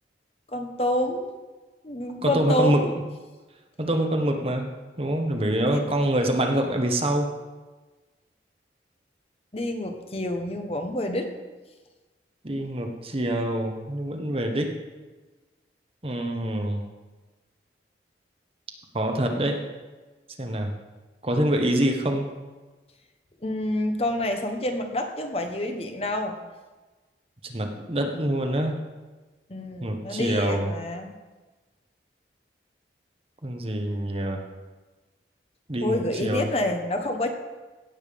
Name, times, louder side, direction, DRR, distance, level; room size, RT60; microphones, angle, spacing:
voice 1, 0.5-1.3 1.8-2.9 5.7-5.9 9.5-11.3 23.4-26.3 29.5-31.1 35.8-37.3, left 1 dB, 35° left, 5 dB, 1.1 m, -28 dB
voice 2, 2.2-2.9 3.8-4.7 5.0-7.3 12.4-14.8 16.0-16.8 18.9-19.7 20.4-20.7 21.2-22.3 27.4-28.8 29.8-30.7 33.4-34.4 35.7-36.5, right 1 dB, 30° right, 3 dB, 1.2 m, -25 dB
17.0 x 7.3 x 5.2 m, 1.2 s
head